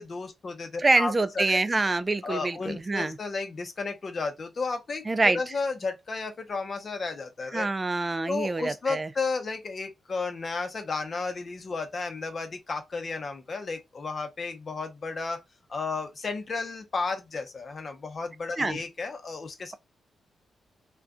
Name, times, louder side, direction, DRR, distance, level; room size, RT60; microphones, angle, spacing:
voice 1, 0.0-1.6 2.2-7.7 8.3-15.4 15.7-19.7, left 4 dB, 50° left, 0.8 m, -33 dB
voice 2, 0.8-3.2 5.1-5.4 7.5-9.1 18.6-18.8, right 3 dB, 30° right, 0.3 m, -25 dB
2.4 x 2.2 x 3.6 m
supercardioid pair, 50°, 0 cm